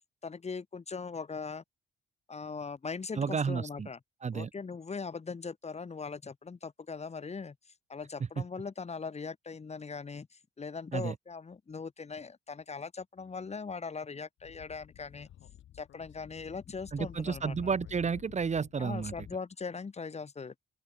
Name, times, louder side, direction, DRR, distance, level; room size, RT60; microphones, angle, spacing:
voice 1, 0.2-1.6 2.3-4.0 4.3-7.6 7.9-15.3 15.7-17.6 18.8-20.5, left 5 dB, 35° left, 4.2 m, -40 dB
voice 2, 3.1-3.9 4.2-4.5 8.4-8.5 10.9-11.1 16.9-19.1, right 6 dB, 35° right, 1.3 m, -31 dB
Speech / Wind, 14.4-19.3, left 12 dB, 75° left, 4.6 m, -51 dB
open air
cardioid pair, 90°, 20 cm